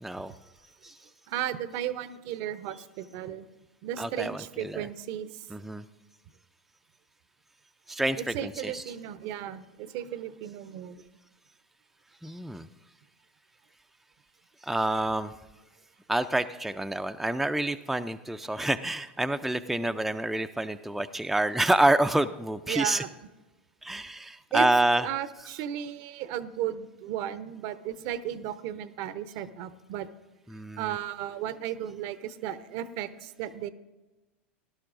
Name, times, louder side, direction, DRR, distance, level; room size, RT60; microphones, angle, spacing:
voice 1, 0.0-0.3 0.8-0.9 4.0-4.9 5.5-5.8 7.9-8.9 12.2-12.7 14.6-15.3 16.1-23.0 23.8-25.1 25.4-25.5 30.5-31.0, right 1 dB, ahead, 8 dB, 0.4 m, -28 dB
voice 2, 1.3-3.5 3.8-5.3 8.2-11.1 22.7-23.1 24.5-24.7 25.0-30.1 30.8-33.7, right 11 dB, 55° right, 14 dB, 0.7 m, -35 dB
18.0 x 11.5 x 2.6 m, 1.1 s
hypercardioid pair, 85°, 7 cm